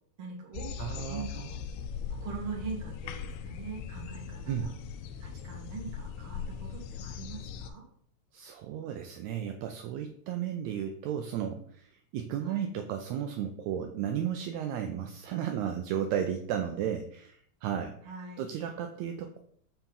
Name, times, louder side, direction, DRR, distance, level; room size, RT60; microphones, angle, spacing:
voice 1, 0.2-1.6 2.1-4.7 5.2-7.8 12.4-12.6 18.1-18.5, right 5 dB, 50° right, 0 dB, 1.9 m, -42 dB
sound 1, 0.5-7.7, left 7 dB, 80° left, 1.8 m, -40 dB
voice 2, 0.8-1.5 4.5-4.7 8.3-18.1 18.4-19.4, right 9 dB, 80° right, 5 dB, 1.8 m, -34 dB
6.8 x 2.9 x 5.3 m, 0.63 s
omnidirectional pair, 3.4 m